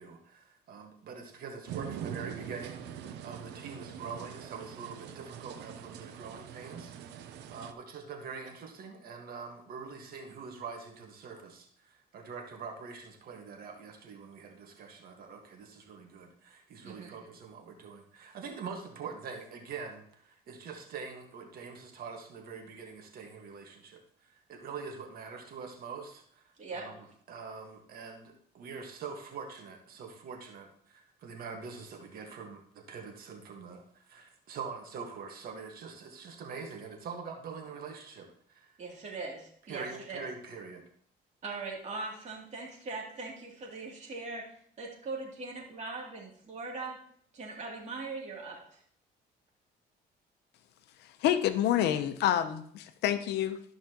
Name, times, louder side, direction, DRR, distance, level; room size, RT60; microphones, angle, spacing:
voice 1, 0.0-38.7 39.7-40.8, right 5 dB, 60° right, 3 dB, 1.6 m, -44 dB
sound 1, 1.7-7.7, right 9 dB, 85° right, 0.7 m, -43 dB
voice 2, 38.8-40.3 41.4-44.4 44.8-47.0 47.3-48.8, right 3 dB, 45° right, -2 dB, 2.8 m, -40 dB
voice 3, 51.2-53.6, left 11 dB, 80° left, 10 dB, 0.8 m, -28 dB
13.0 x 5.8 x 3.0 m, 0.62 s
cardioid pair, 110°, 17 cm